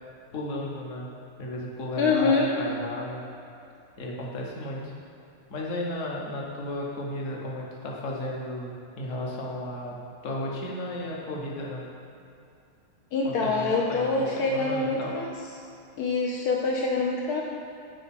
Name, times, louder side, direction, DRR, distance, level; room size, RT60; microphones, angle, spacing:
voice 1, 0.3-1.1 1.4-3.2 4.0-4.9 5.5-10.0 10.2-11.9 13.2-15.1, left 1 dB, 45° left, -2 dB, 1.2 m, -34 dB
voice 2, 2.0-2.5 13.1-15.3 16.0-17.4, left 3 dB, 75° left, -1 dB, 0.9 m, -25 dB
9.1 x 3.8 x 5.9 m, 2.6 s
omnidirectional pair, 2.3 m